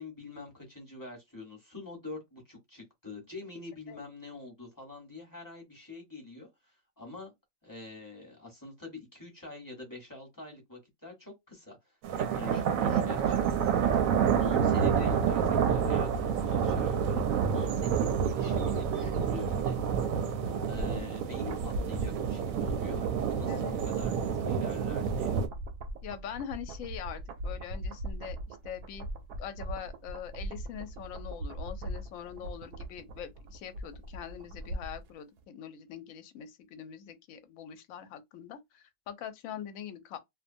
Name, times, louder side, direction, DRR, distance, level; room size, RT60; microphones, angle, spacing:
voice 1, 0.0-7.3 7.6-13.4 13.8-14.0 14.4-19.8 20.7-25.4, left 3 dB, 15° left, 0.9 m, -45 dB
sound 1, 12.0-25.5, right 7 dB, 70° right, 0.9 m, -28 dB
sound 2, 13.1-20.0, right 4 dB, 35° left, 0.7 m, -41 dB
sound 3, 20.4-35.1 35.4-35.5, right 1 dB, 90° right, 1.1 m, -40 dB
voice 2, 26.0-29.1 29.4-40.2, left 9 dB, 70° left, 0.9 m, -43 dB
2.6 x 2.2 x 2.5 m
omnidirectional pair, 1.6 m